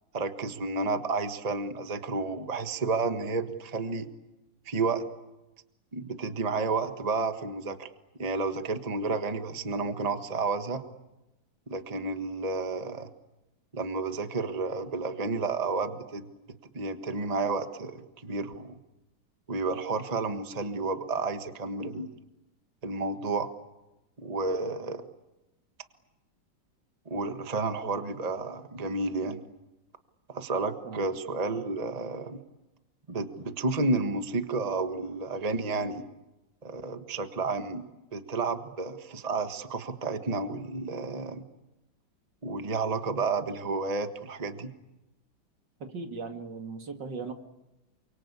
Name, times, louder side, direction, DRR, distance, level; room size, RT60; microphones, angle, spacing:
voice 1, 0.1-4.1 4.6-5.0 5.9-7.9 8.2-10.8 11.7-13.1 13.7-16.2 16.7-18.8 19.5-22.1 22.8-23.5 24.2-25.0 27.0-29.4 30.3-32.4 33.1-36.0 36.6-37.8 38.1-41.4 42.4-44.7, right 3 dB, 20° right, 8 dB, 1.4 m, -31 dB
voice 2, 45.8-47.3, right 4 dB, 65° right, 5 dB, 2.8 m, -38 dB
28.5 x 25.0 x 8.4 m, 0.97 s
omnidirectional pair, 2.1 m